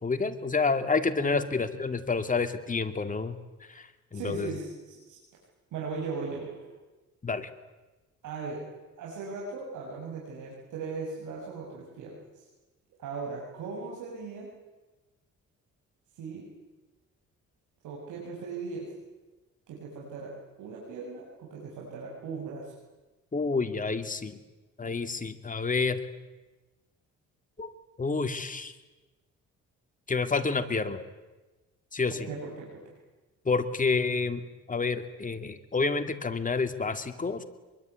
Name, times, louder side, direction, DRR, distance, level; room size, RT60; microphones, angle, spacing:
voice 1, 0.0-3.4 3.7-3.8 4.1-4.5 7.2-7.5 23.3-24.4 24.8-26.0 27.6-27.7 28.0-28.7 30.1-31.0 31.9-32.3 33.5-34.4 34.7-37.4, left 4 dB, 25° left, 8 dB, 2.6 m, -29 dB
voice 2, 4.1-5.2 5.7-6.7 8.2-8.6 9.0-12.4 13.0-14.5 16.1-16.5 17.8-18.9 19.7-22.7 32.3-33.0, right 4 dB, 85° right, -3 dB, 7.1 m, -38 dB
24.5 x 23.0 x 9.6 m, 1.2 s
cardioid pair, 90°, 30 cm